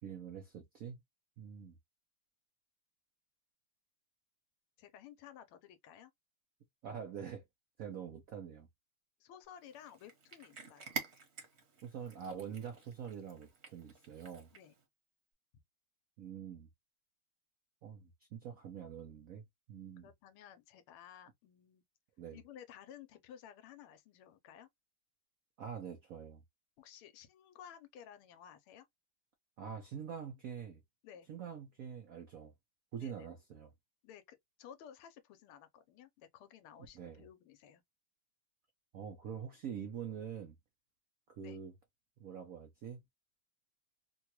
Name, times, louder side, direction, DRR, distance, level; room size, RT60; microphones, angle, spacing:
voice 1, 0.0-1.0 1.4-1.8 6.8-7.4 7.8-8.7 11.8-14.5 16.2-16.7 17.8-19.4 19.7-20.1 22.2-22.4 25.6-26.4 29.6-30.8 31.3-32.5 32.9-33.7 36.9-37.3 38.9-40.5 41.4-41.7 42.2-43.0, right 7 dB, 85° right, 0.7 m, -45 dB
voice 2, 4.8-6.1 9.2-11.0 14.5-14.8 20.0-21.8 22.3-24.7 26.8-28.9 31.0-31.3 33.0-33.4 34.0-37.8 41.4-41.6, left 9 dB, 90° left, 1.6 m, -55 dB
Cat, 9.6-14.8, right 6 dB, 45° right, 0.9 m, -48 dB
3.7 x 2.3 x 2.9 m
omnidirectional pair, 2.4 m